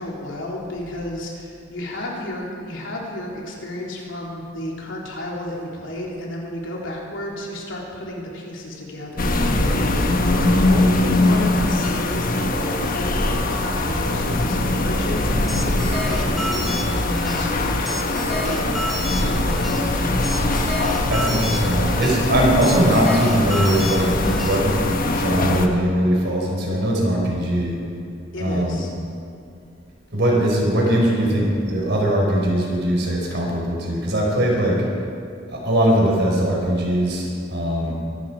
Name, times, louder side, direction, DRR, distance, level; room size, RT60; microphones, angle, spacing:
voice 1, 0.0-19.6 28.3-28.9, left 1 dB, 80° left, -3 dB, 3.6 m, -32 dB
sound 1, 9.2-25.7, left 2 dB, 45° left, 1.2 m, -22 dB
sound 2, 15.2-24.6, equal, ahead, 2.3 m, -29 dB
voice 2, 21.1-24.7 25.1-27.8 28.4-28.8 30.1-34.8 35.5-37.9, right 1 dB, 60° right, -2 dB, 4.7 m, -20 dB
24.0 x 12.0 x 5.0 m, 2.5 s
head